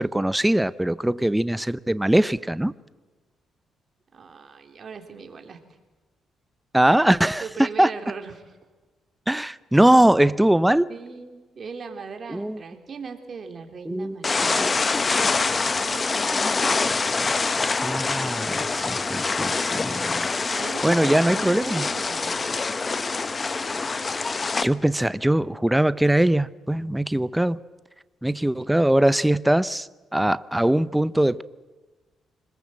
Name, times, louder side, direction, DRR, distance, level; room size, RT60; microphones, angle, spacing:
voice 1, 0.0-2.7 6.7-7.9 9.3-10.9 12.3-12.6 13.9-14.2 14.6-14.7 15.1-15.2 17.8-20.3 20.8-21.8 24.6-27.6 28.2-31.4, right 1 dB, 5° right, 0.7 m, -21 dB
voice 2, 4.1-5.6 7.4-8.6 10.9-14.8 15.7-16.5 20.5-22.6, right 5 dB, 45° right, 3.5 m, -39 dB
sound 1, 14.2-24.6, left 4 dB, 30° left, 1.0 m, -25 dB
25.5 x 21.0 x 7.7 m
cardioid pair, 90°, 0 cm